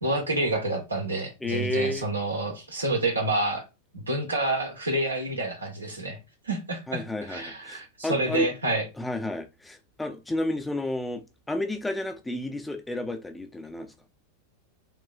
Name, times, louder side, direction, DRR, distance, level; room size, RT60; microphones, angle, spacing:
voice 1, 0.0-3.6 3.9-6.2 6.4-7.0 7.3-8.8, right 2 dB, 80° right, 1.5 m, -28 dB
voice 2, 1.4-2.1 6.9-8.5 9.0-13.9, left 1 dB, 5° left, 0.7 m, -31 dB
6.8 x 3.1 x 2.5 m
figure-of-eight pair, 90°, 0 cm